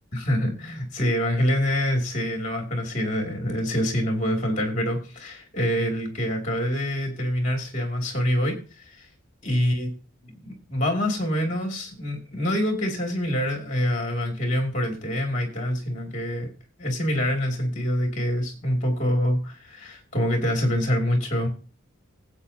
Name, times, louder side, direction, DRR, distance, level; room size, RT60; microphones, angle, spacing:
voice 1, 0.1-9.1 9.4-9.9 10.4-16.5 16.8-21.5, equal, 35° left, 2 dB, 2.6 m, -26 dB
18.0 x 8.3 x 2.8 m, 0.34 s
head